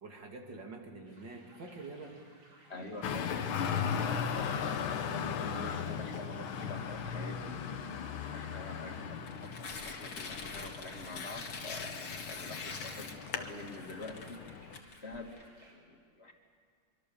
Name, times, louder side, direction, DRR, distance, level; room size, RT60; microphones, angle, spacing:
voice 1, 0.0-2.2, right 3 dB, 55° right, 2 dB, 3.1 m, -46 dB
sound 1, 1.1-15.7, right 1 dB, 80° right, 5.7 m, -61 dB
voice 2, 2.7-14.7 15.0-15.3 15.6-16.3, left 2 dB, 30° left, 2 dB, 2.5 m, -46 dB
Traffic noise roadway noise, 3.0-14.8, left 7 dB, 75° left, 1.9 m, -38 dB
Tearing, 9.2-15.4, left 4 dB, 55° left, 2.3 m, -44 dB
24.5 x 24.0 x 7.1 m, 2.3 s
omnidirectional pair, 2.3 m